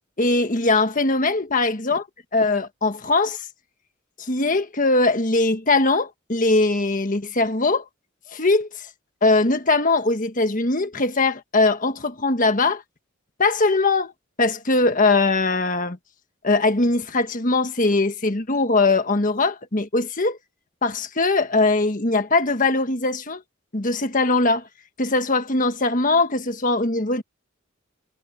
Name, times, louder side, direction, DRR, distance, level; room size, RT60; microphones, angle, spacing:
voice 1, 0.2-2.0 2.3-3.4 4.2-7.8 8.3-8.9 9.2-12.8 13.4-14.1 14.4-16.0 16.4-20.4 20.8-23.4 23.7-24.6 25.0-27.2, left 3 dB, 40° left, 1.5 m, -21 dB
head